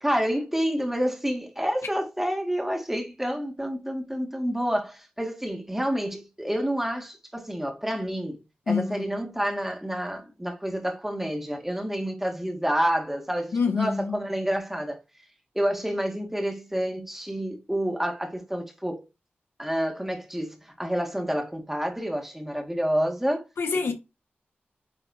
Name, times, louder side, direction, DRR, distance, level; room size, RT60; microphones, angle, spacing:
voice 1, 0.0-8.4 8.7-15.0 15.5-19.0 19.6-23.4 23.9-24.0, equal, 5° right, 2.0 m, -28 dB
voice 2, 8.7-9.1 13.5-14.1 23.6-23.9, left 5 dB, 90° left, 1.4 m, -26 dB
9.2 x 4.0 x 2.7 m
wide cardioid pair, 80°, 4 cm